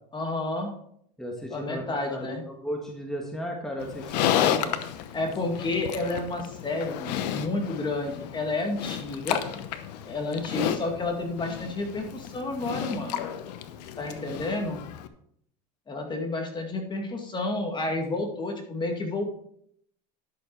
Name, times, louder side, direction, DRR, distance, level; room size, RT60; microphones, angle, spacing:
voice 1, 0.1-0.7 1.5-2.4 5.1-9.4 10.1-13.2 14.0-14.8 15.9-19.3, left 2 dB, 20° left, 3 dB, 2.0 m, -30 dB
voice 2, 1.2-4.8 17.9-18.0, equal, ahead, 0 dB, 1.6 m, -35 dB
Livestock farm animals working animals, 3.8-15.1, left 10 dB, 85° left, 0.9 m, -32 dB
11.5 x 6.7 x 4.6 m, 0.70 s
supercardioid pair, 115°, 21 cm